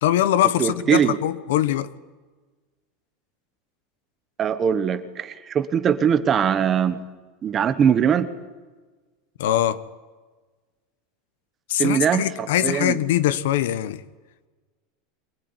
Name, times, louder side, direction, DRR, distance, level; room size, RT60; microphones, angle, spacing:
voice 1, 0.0-1.9 9.4-9.8 11.7-14.0, left 12 dB, 85° left, 1.3 m, -22 dB
voice 2, 0.6-1.2 4.4-7.0 7.4-8.3 11.8-13.0, right 8 dB, 20° right, 1.3 m, -21 dB
24.0 x 20.0 x 9.9 m
supercardioid pair, 175°, 0 cm